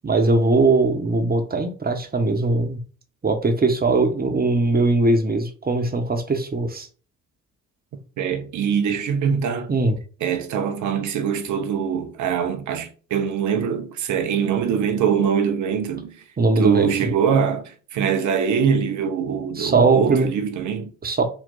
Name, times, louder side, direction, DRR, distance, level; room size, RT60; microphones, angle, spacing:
voice 1, 0.0-2.8 3.2-6.9 9.7-10.0 16.4-16.9 19.6-20.3 21.0-21.2, right 3 dB, 25° right, 1.0 m, -20 dB
voice 2, 8.2-9.7 10.2-16.2 16.6-20.9, right 7 dB, 50° right, 0.8 m, -23 dB
4.0 x 2.4 x 3.8 m
figure-of-eight pair, 45°, 38 cm